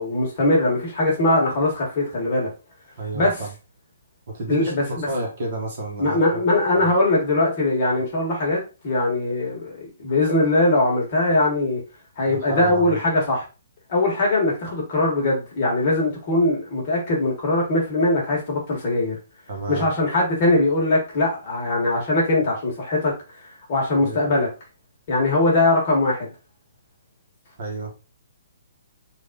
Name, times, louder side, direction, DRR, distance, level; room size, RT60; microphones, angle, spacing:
voice 1, 0.0-2.5 3.1-3.4 4.5-5.1 6.0-11.8 12.2-13.4 13.9-19.1 19.7-23.1 23.7-24.5 25.1-26.3, left 2 dB, 30° left, 1.3 m, -21 dB
voice 2, 3.0-3.5 4.3-6.4 6.7-6.9 8.0-8.1 12.3-13.0 19.5-19.9 24.0-24.2 27.6-27.9, right 2 dB, 40° right, 1.1 m, -31 dB
3.4 x 2.5 x 3.8 m
hypercardioid pair, 180°, 0 cm